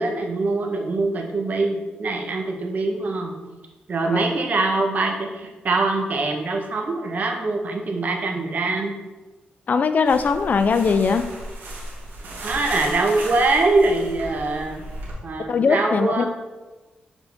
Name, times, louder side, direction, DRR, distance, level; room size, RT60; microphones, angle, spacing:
voice 1, 0.0-3.4 3.9-8.9 12.4-14.8 15.2-16.3, right 3 dB, 55° right, 2 dB, 1.0 m, -23 dB
voice 2, 9.7-11.3 15.5-16.3, left 5 dB, 55° left, 10 dB, 0.4 m, -20 dB
sound 1, 10.0-15.1, right 1 dB, 85° right, 1.6 m, -36 dB
7.1 x 3.9 x 3.5 m, 1.2 s
cardioid pair, 85°, 3 cm